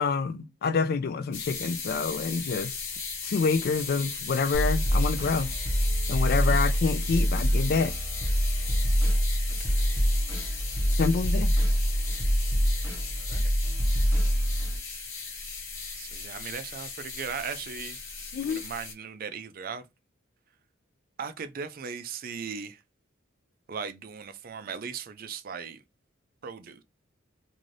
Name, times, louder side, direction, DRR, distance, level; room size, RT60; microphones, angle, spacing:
voice 1, 0.0-2.9 3.2-5.5 6.1-7.9 11.0-11.5 18.3-18.6, left 5 dB, 50° left, 0.3 m, -27 dB
sound 1, 1.3-18.9, left 4 dB, 80° left, 1.0 m, -37 dB
sound 2, 4.5-14.8, equal, 10° right, 1.1 m, -25 dB
voice 2, 13.2-13.5 16.0-18.0 18.4-19.8 21.2-22.8 23.7-25.8 26.4-26.8, right 6 dB, 45° right, 0.4 m, -38 dB
2.6 x 2.6 x 3.1 m
head